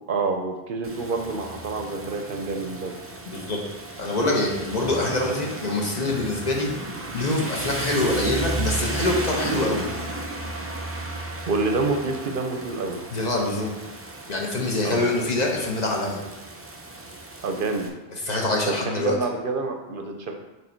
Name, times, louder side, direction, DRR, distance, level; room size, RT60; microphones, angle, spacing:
voice 1, 0.1-3.0 11.5-13.0 14.8-15.1 17.4-17.9 18.7-20.3, right 3 dB, 60° right, 4 dB, 0.7 m, -27 dB
Rain, 0.8-17.9, right 2 dB, 20° right, 0.4 m, -34 dB
voice 2, 4.0-6.7 7.1-9.9 13.1-13.7 14.3-16.2 18.2-19.2, left 2 dB, 45° left, -1 dB, 0.9 m, -25 dB
6.5 x 3.3 x 4.4 m, 1.1 s
omnidirectional pair, 1.1 m